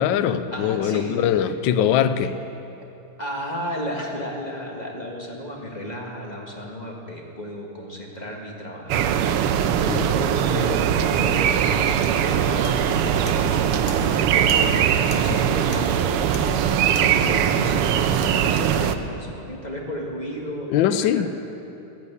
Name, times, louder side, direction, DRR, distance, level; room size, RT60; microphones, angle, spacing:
voice 1, 0.0-2.3 9.9-10.0 20.7-21.3, left 9 dB, 70° left, 12 dB, 1.2 m, -21 dB
voice 2, 0.5-1.5 2.2-2.3 3.2-16.6 17.0-21.3, equal, 20° left, -1 dB, 1.7 m, -34 dB
sound 1, 8.9-18.9, right 9 dB, 85° right, 1.6 m, -21 dB
sound 2, 12.0-17.3, left 3 dB, 45° left, 1.1 m, -40 dB
15.0 x 11.0 x 8.2 m, 2.9 s
omnidirectional pair, 2.4 m